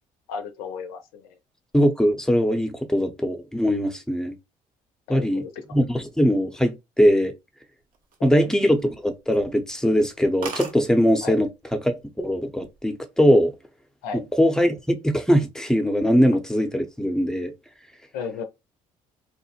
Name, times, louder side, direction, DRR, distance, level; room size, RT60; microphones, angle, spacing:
voice 1, 0.3-1.4 5.1-5.6 8.4-8.5 11.2-11.4 14.0-14.2 18.1-18.4, left 6 dB, 85° left, 0.4 m, -34 dB
voice 2, 1.7-4.4 5.1-5.4 5.7-7.3 8.2-11.5 11.8-11.9 12.2-13.5 14.4-17.5, equal, 5° left, 0.6 m, -21 dB
sound 1, 7.9-8.9 9.3-9.5 9.9-10.0 10.2-10.3 10.4-10.8 11.7-12.0 12.4-12.8, right 4 dB, 65° right, 0.7 m, -37 dB
3.0 x 2.1 x 2.8 m
supercardioid pair, 65°, 15 cm